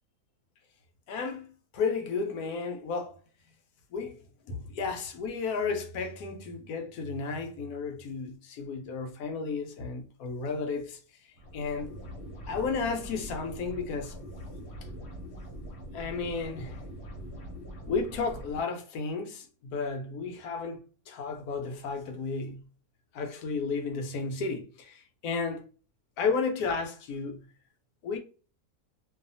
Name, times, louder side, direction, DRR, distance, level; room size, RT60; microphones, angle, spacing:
voice 1, 1.1-1.5 1.7-3.1 3.9-4.2 4.5-11.0 11.5-11.9 12.5-14.1 15.9-16.8 17.9-22.6 23.1-25.6 26.2-27.4 28.0-28.2, left 4 dB, 75° left, 1.1 m, -33 dB
sound 1, 11.4-18.6, equal, 50° left, 1.0 m, -43 dB
2.7 x 2.4 x 2.6 m
omnidirectional pair, 1.7 m